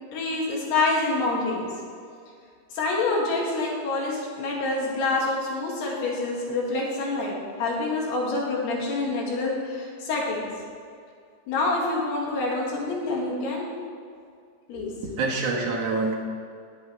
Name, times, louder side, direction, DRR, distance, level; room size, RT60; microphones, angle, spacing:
voice 1, 0.1-1.7 2.7-10.5 11.5-13.7 14.7-14.9, left 3 dB, 75° left, -3 dB, 3.8 m, -27 dB
voice 2, 14.7-16.1, right 3 dB, 65° right, -3 dB, 1.6 m, -27 dB
19.5 x 8.0 x 3.3 m, 2.3 s
omnidirectional pair, 4.9 m